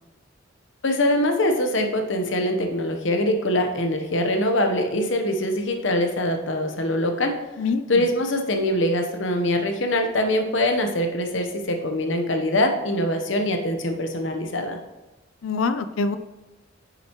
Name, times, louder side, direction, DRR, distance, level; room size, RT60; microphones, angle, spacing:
voice 1, 0.8-7.4 7.9-14.8, left 1 dB, 70° left, 5 dB, 0.9 m, -23 dB
voice 2, 7.6-8.0 15.4-16.2, left 4 dB, 85° left, 11 dB, 0.5 m, -25 dB
8.9 x 6.8 x 3.0 m, 1.1 s
head